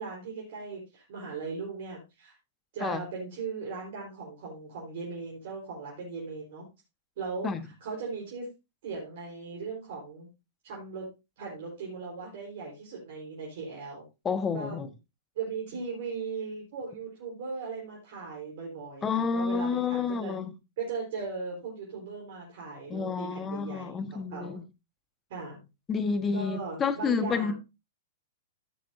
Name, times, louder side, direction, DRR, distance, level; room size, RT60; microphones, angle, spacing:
voice 1, 0.0-2.3 2.7-6.6 7.2-7.5 7.8-8.4 8.8-10.3 10.6-11.1 11.4-14.0 14.5-14.8 15.3-20.3 20.8-24.6 25.3-25.6 26.3-27.5, right 4 dB, 60° right, 4.3 m, -38 dB
voice 2, 14.2-14.9 19.0-20.5 22.9-24.6 25.9-27.5, left 5 dB, 20° left, 1.4 m, -29 dB
16.0 x 6.7 x 2.7 m
hypercardioid pair, 105°, 0 cm